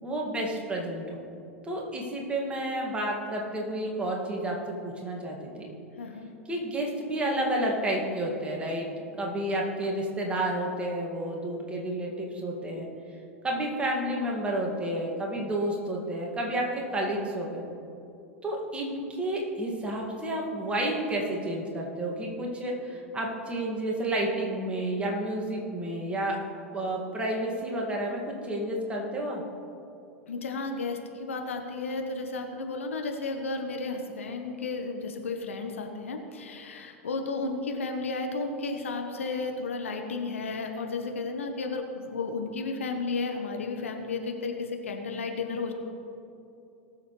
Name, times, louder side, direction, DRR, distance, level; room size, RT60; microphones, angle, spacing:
voice 1, 0.0-1.2 1.6-5.7 6.5-8.9 9.2-12.9 13.4-17.6 18.4-26.4 26.7-29.4, right 1 dB, 15° right, -1 dB, 2.1 m, -30 dB
voice 2, 6.0-6.3 30.3-45.7, left 3 dB, 70° left, 4 dB, 1.1 m, -33 dB
19.5 x 7.1 x 3.3 m, 2.7 s
figure-of-eight pair, 90°, 7 cm